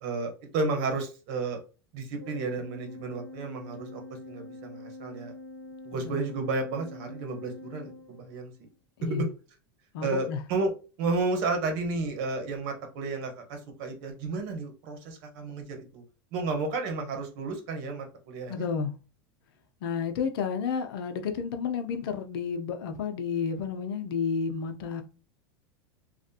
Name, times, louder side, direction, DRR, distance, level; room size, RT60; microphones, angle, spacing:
voice 1, 0.0-1.6 1.9-4.0 4.3-5.3 5.8-8.5 9.1-9.3 10.0-10.7 11.0-16.0 16.3-18.7, right 3 dB, 60° right, 1.1 m, -32 dB
Organ, 2.2-8.7, left 2 dB, 5° left, 1.5 m, -45 dB
voice 2, 5.9-6.2 9.0-9.3 9.9-10.5 18.5-18.9 19.8-25.0, left 6 dB, 75° left, 0.7 m, -31 dB
3.3 x 2.5 x 2.7 m
hypercardioid pair, 110°, 13 cm